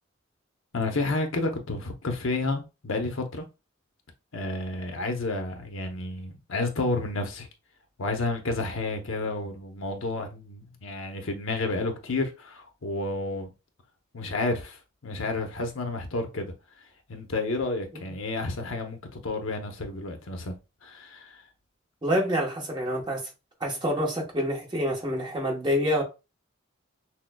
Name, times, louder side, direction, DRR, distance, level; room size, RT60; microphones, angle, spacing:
voice 1, 0.7-3.4 4.3-7.5 8.0-13.5 14.1-16.5 17.1-20.6 20.8-21.4, left 2 dB, 75° left, 0.8 m, -30 dB
voice 2, 22.0-23.3 23.6-26.0, equal, 20° right, 1.0 m, -27 dB
6.1 x 2.1 x 2.2 m
head